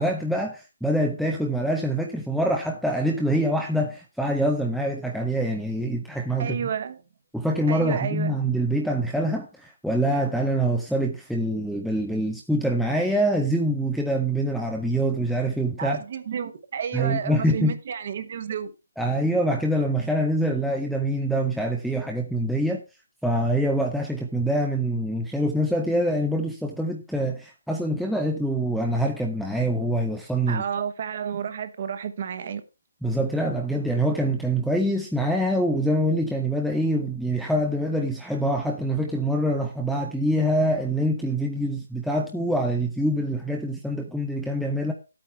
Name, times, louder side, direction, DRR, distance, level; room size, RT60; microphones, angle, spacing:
voice 1, 0.0-6.6 7.3-16.0 16.9-17.7 19.0-22.8 23.2-30.6 33.0-44.9, right 1 dB, ahead, 0.5 m, -25 dB
voice 2, 6.4-7.0 7.7-8.3 15.8-18.7 30.5-32.6, right 8 dB, 30° right, 1.0 m, -31 dB
11.5 x 8.8 x 3.3 m
hypercardioid pair, 180°, 0 cm